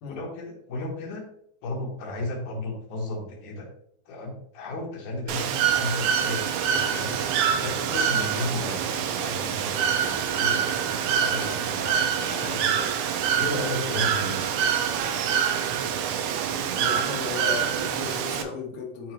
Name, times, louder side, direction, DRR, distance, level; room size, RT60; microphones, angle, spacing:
voice 1, 0.1-1.2 1.6-3.7 4.1-14.6, left 2 dB, 60° left, -1 dB, 2.3 m, -34 dB
Bird / Water, 5.3-18.4, right 8 dB, 80° right, 2.3 m, -26 dB
voice 2, 16.7-19.1, left 5 dB, 80° left, -1 dB, 1.5 m, -35 dB
9.9 x 3.8 x 3.0 m, 0.68 s
omnidirectional pair, 4.9 m